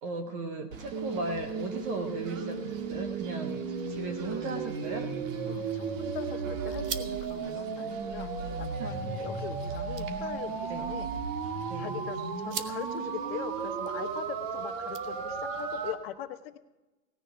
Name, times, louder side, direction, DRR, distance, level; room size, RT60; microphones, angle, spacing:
voice 1, 0.0-5.1 8.8-9.3 10.7-11.0 11.7-12.0, right 3 dB, 15° right, 6 dB, 0.6 m, -37 dB
Singing / Bird, 0.7-15.9, right 4 dB, 55° right, 1.9 m, -49 dB
sound 1, 0.9-15.9, right 5 dB, 30° right, 1.4 m, -35 dB
sound 2, 5.3-15.6, right 7 dB, 80° right, 1.5 m, -47 dB
voice 2, 5.5-8.3 8.6-11.1 11.8-16.6, left 12 dB, 40° left, 10 dB, 0.9 m, -41 dB
17.5 x 10.0 x 5.7 m, 1.1 s
hypercardioid pair, 140°, 47 cm